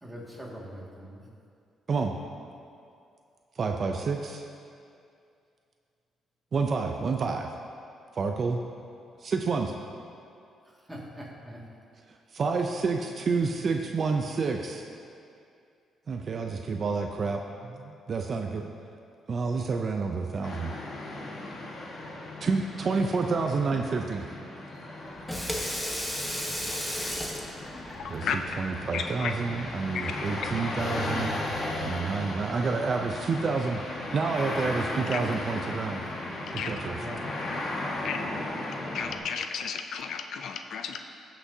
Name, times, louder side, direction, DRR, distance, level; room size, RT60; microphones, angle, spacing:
voice 1, 0.0-1.3 10.6-11.6 36.8-37.2, equal, 10° right, -3 dB, 2.0 m, -42 dB
voice 2, 3.6-4.4 6.5-7.5 8.1-8.6 9.2-9.7 12.1-14.9 16.1-18.7 19.3-20.7 22.4-24.4 28.1-31.4 31.8-36.0 36.5-36.9, right 4 dB, 45° right, 4 dB, 0.5 m, -29 dB
sound 1, 20.4-39.2, left 2 dB, 55° left, 1.4 m, -36 dB
Water tap faucet / Sink (filling or washing), 25.1-30.6, equal, 5° left, 1.1 m, -36 dB
voice 3, 26.6-27.1 27.9-28.4 28.9-29.3 29.9-30.3 35.1-35.2 36.6-36.7 37.4-37.5 38.0-38.2 38.9-41.0, left 7 dB, 70° left, 6 dB, 0.5 m, -34 dB
15.5 x 5.9 x 2.8 m, 2.5 s
cardioid pair, 90°, 0 cm